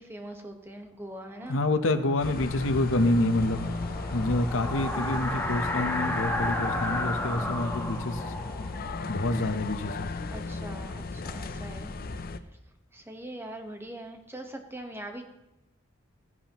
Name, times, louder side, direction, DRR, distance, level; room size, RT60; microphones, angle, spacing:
voice 1, 0.0-1.6 10.3-11.9 12.9-15.2, right 1 dB, 10° right, 4 dB, 1.2 m, -42 dB
voice 2, 1.5-3.7 4.1-8.3 9.1-10.1, left 2 dB, 80° left, 9 dB, 0.9 m, -27 dB
sound 1, 1.7-10.3, left 1 dB, 10° left, 1.2 m, -34 dB
sound 2, 2.2-12.4, left 3 dB, 50° left, 0.6 m, -36 dB
15.5 x 11.0 x 3.0 m, 0.97 s
head